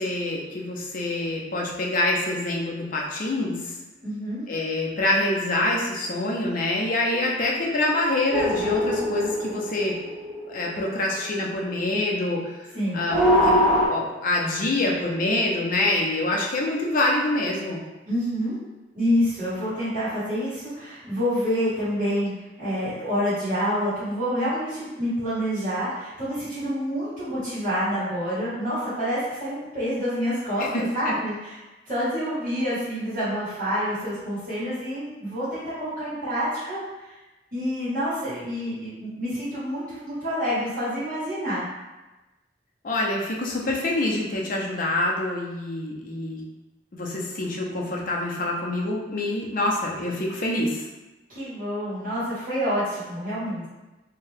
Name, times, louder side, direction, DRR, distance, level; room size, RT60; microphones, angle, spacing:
voice 1, 0.0-3.7 4.5-9.9 10.5-12.6 12.9-17.8 30.6-31.1 42.8-46.4 46.9-50.8, left 2 dB, 50° left, -2 dB, 0.5 m, -26 dB
voice 2, 4.0-4.5 12.7-13.0 18.1-18.6 18.9-22.3 22.6-31.6 31.9-37.1 37.5-41.6 51.3-53.7, equal, 50° right, -12 dB, 1.4 m, -27 dB
sound 1, 8.3-10.8 13.1-13.9, equal, 25° right, 0.9 m, -22 dB
2.7 x 2.2 x 3.2 m, 1.1 s
head